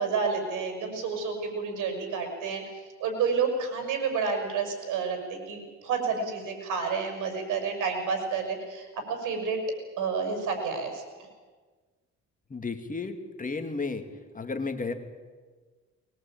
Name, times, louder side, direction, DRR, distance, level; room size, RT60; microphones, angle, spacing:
voice 1, 0.0-2.6 3.0-9.6 10.0-11.0, right 5 dB, 85° right, 5 dB, 6.3 m, -30 dB
voice 2, 12.5-14.0 14.3-14.9, left 4 dB, 25° left, 6 dB, 2.5 m, -33 dB
22.0 x 20.5 x 8.9 m, 1.4 s
cardioid pair, 90°, 30 cm